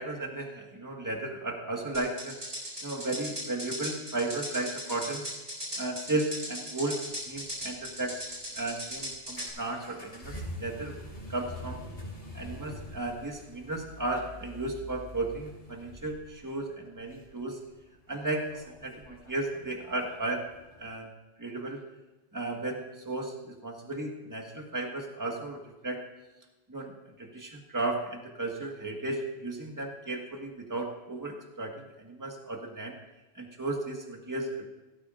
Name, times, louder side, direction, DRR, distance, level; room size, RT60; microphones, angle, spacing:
voice 1, 0.0-2.4 2.8-5.2 5.8-7.0 7.3-8.2 8.5-10.9 11.3-11.8 12.3-17.6 18.1-20.4 20.8-21.1 21.4-21.8 22.3-26.0 26.7-33.0 33.3-34.7, right 2 dB, 20° right, 1 dB, 1.6 m, -34 dB
sound 1, 1.9-9.5, equal, 70° right, 5.5 m, -38 dB
sound 2, 7.1-21.0, left 1 dB, 60° left, 3.2 m, -46 dB
16.5 x 14.0 x 2.5 m, 1.1 s
omnidirectional pair, 1.1 m